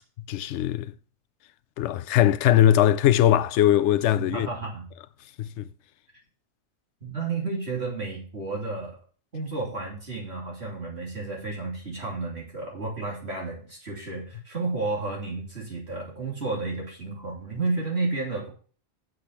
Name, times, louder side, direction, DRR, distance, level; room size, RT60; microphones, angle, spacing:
voice 1, 0.3-0.9 1.8-4.5 5.4-5.7, left 11 dB, 65° left, 0.8 m, -20 dB
voice 2, 4.2-4.9 7.0-9.0 9.3-18.5, right 3 dB, 50° right, 3.4 m, -32 dB
7.7 x 6.7 x 5.8 m
omnidirectional pair, 1.4 m